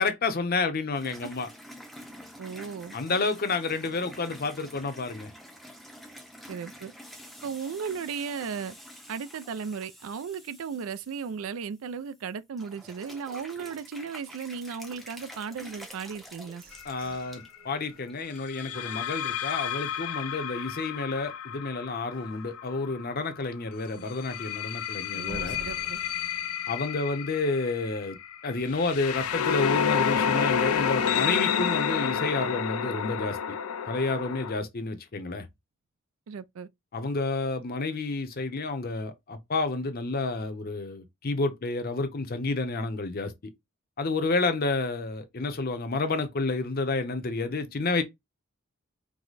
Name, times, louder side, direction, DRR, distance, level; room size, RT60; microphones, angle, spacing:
voice 1, 0.0-1.5 2.9-5.3 16.8-25.6 26.7-28.2 28.4-33.6 33.8-35.5 36.9-43.5 44.0-48.0, left 3 dB, 45° left, 0.7 m, -30 dB
sound 1, 1.0-12.2 12.6-17.5 18.0-18.4 18.8-18.9 19.8-19.9, equal, ahead, 0.6 m, -48 dB
voice 2, 2.4-2.9 6.5-6.9 7.4-8.8 9.1-16.6 25.1-26.0 36.3-36.7, right 6 dB, 70° right, 0.4 m, -36 dB
sound 2, 16.2-19.9 20.3-20.4 20.8-21.2 21.6-21.7 22.2-22.3 25.3-27.9, right 2 dB, 45° right, 1.2 m, -49 dB
sound 3, 16.7-17.0 18.5-23.3 24.1-34.5, left 7 dB, 85° left, 0.5 m, -30 dB
4.7 x 2.1 x 4.0 m
head